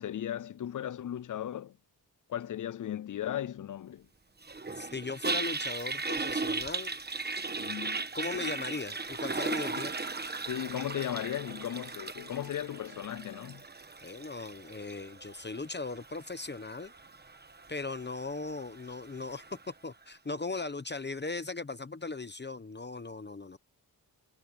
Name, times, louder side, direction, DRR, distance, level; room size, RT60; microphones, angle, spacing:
voice 1, 0.0-1.8 2.3-4.1 7.6-8.0 9.7-9.8 10.5-13.6, left 10 dB, 50° left, 0.5 m, -36 dB
Toilet flush, 4.4-19.6, right 3 dB, 25° right, 1.2 m, -38 dB
voice 2, 4.8-7.0 8.1-9.9 14.0-16.9 17.7-23.6, left 3 dB, 25° left, 0.9 m, -38 dB
wide cardioid pair, 125°, 43 cm